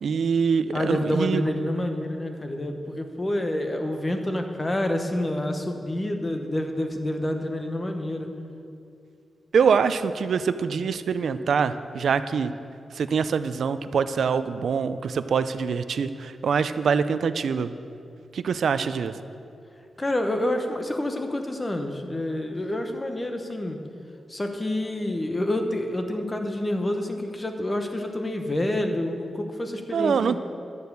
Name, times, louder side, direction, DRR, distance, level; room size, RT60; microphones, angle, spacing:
voice 1, 0.0-1.4 9.5-12.5 12.9-17.7 18.3-19.1 29.9-30.4, right 6 dB, 70° right, 11 dB, 0.4 m, -24 dB
voice 2, 0.7-8.3 20.0-23.8 24.3-30.4, left 1 dB, 20° left, 5 dB, 1.0 m, -28 dB
11.0 x 6.7 x 8.2 m, 2.5 s
wide cardioid pair, 145°, 0 cm